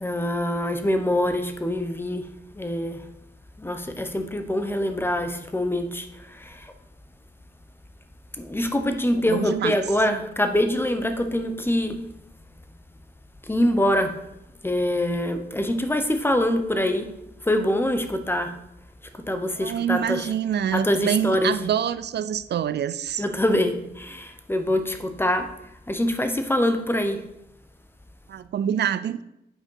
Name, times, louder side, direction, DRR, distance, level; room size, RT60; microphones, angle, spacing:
voice 1, 0.0-2.2 2.6-3.0 3.6-6.1 6.4-6.7 8.4-12.0 13.5-14.1 14.6-17.1 17.5-18.5 19.3-20.3 20.7-21.5 23.2-25.5 25.9-27.2, left 1 dB, 10° left, 7 dB, 0.9 m, -24 dB
voice 2, 9.2-9.8 19.6-23.2 28.3-29.2, right 9 dB, 80° right, 15 dB, 0.4 m, -26 dB
8.8 x 5.0 x 5.7 m, 0.84 s
wide cardioid pair, 100°, 17 cm